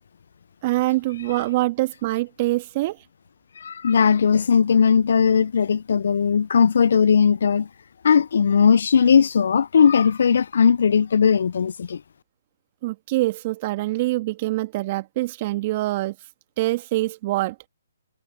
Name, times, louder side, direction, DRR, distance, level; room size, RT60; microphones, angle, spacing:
voice 1, 0.6-3.0 12.8-16.1 16.6-17.5, right 18 dB, 35° right, 1.6 m, -24 dB
voice 2, 3.6-7.7 8.0-12.0, left 6 dB, 65° left, 0.4 m, -18 dB
hypercardioid pair, 140°, 0 cm